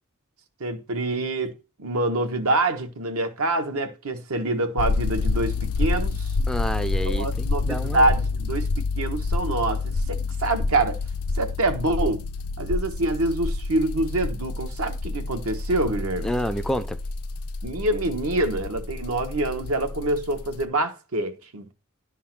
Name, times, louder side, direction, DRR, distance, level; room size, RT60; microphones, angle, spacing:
voice 1, 0.6-1.5 1.8-6.3 7.0-11.0 11.4-12.2 12.6-16.3 17.6-21.7, right 2 dB, 75° right, 1.2 m, -26 dB
sound 1, 4.8-20.7, left 3 dB, 80° left, 0.5 m, -28 dB
voice 2, 6.5-8.1 16.2-17.0, equal, ahead, 0.4 m, -29 dB
10.5 x 3.7 x 5.9 m
head